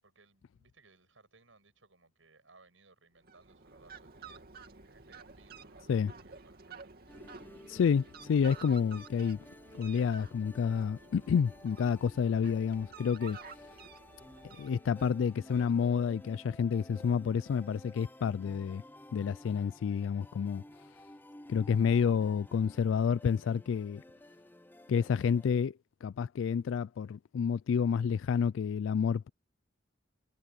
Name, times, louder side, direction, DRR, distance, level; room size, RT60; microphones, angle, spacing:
voice 1, 0.0-6.9, right 3 dB, 90° right, 8.0 m, -63 dB
Fowl, 3.2-16.2, right 5 dB, 55° right, 2.5 m, -52 dB
sound 1, 7.1-25.5, left 1 dB, 10° left, 0.6 m, -54 dB
voice 2, 7.7-9.4 9.7-13.4 14.5-18.8 19.1-20.6 21.5-24.0 24.9-29.3, left 6 dB, 85° left, 0.3 m, -29 dB
head